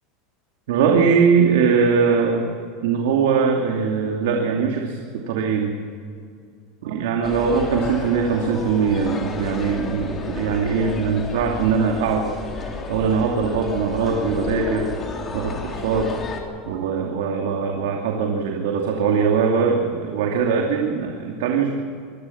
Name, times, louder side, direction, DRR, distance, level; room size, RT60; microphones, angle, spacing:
voice 1, 0.7-2.5 2.8-5.7 6.8-12.2 12.6-14.9 15.3-16.1 16.7-21.7, right 6 dB, 80° right, 1 dB, 2.7 m, -21 dB
sound 1, 7.2-16.4, left 4 dB, 25° left, 3.2 m, -31 dB
25.0 x 18.0 x 7.3 m, 2.3 s
supercardioid pair, 155°, 0 cm